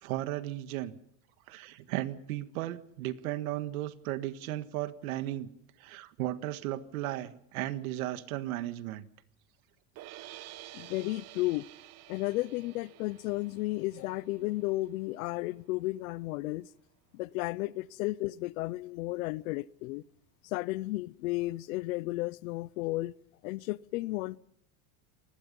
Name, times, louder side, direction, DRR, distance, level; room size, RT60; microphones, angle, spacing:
voice 1, 0.0-0.9 1.5-5.5 5.8-9.1, right 14 dB, 85° right, 1.7 m, -35 dB
sound 1, 10.0-16.1, right 15 dB, 40° right, 1.0 m, -51 dB
voice 2, 10.7-11.7 12.1-16.7 17.1-20.0 20.4-23.1 23.4-24.4, left 19 dB, 75° left, 0.8 m, -33 dB
28.0 x 20.0 x 5.5 m
supercardioid pair, 160°, 42 cm